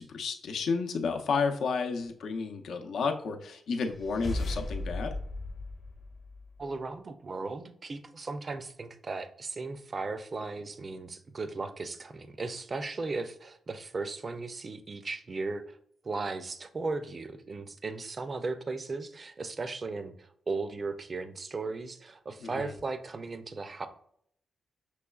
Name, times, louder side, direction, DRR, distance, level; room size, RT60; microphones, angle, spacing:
voice 1, 0.0-5.1 22.4-22.7, left 5 dB, 80° left, 4 dB, 0.6 m, -31 dB
sound 1, 3.9-6.7, left 2 dB, 40° left, 0.7 m, -36 dB
voice 2, 6.6-15.8 16.0-23.9, right 3 dB, 35° right, 10 dB, 0.4 m, -36 dB
6.1 x 3.1 x 2.3 m, 0.65 s
cardioid pair, 115°, 0 cm